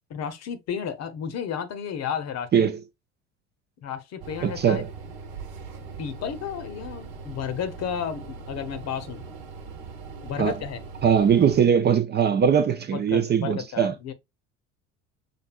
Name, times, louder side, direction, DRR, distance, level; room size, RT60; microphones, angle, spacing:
voice 1, 0.1-2.6 3.8-4.8 6.0-9.2 10.2-10.8 12.9-14.1, left 8 dB, 45° left, 0.9 m, -32 dB
sound 1, 4.2-11.6, right 4 dB, 65° right, 1.1 m, -40 dB
voice 2, 4.4-4.9 10.4-10.5 11.0-13.9, right 7 dB, 25° right, 0.5 m, -21 dB
6.0 x 2.6 x 2.4 m
hypercardioid pair, 65°, 38 cm